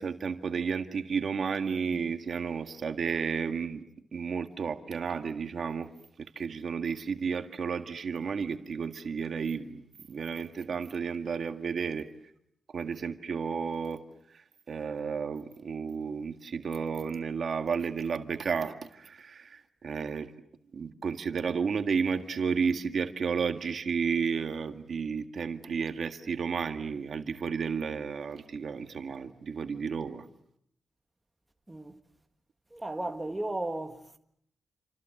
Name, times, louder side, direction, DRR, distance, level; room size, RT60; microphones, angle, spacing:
voice 1, 0.0-3.8 4.1-5.9 6.4-9.8 10.1-12.1 12.7-14.0 14.7-20.3 20.7-30.3, right 6 dB, 60° right, 1.8 m, -32 dB
voice 2, 31.7-32.0 32.7-34.2, right 2 dB, 10° right, 1.6 m, -35 dB
28.5 x 26.5 x 7.8 m
wide cardioid pair, 120°, 0 cm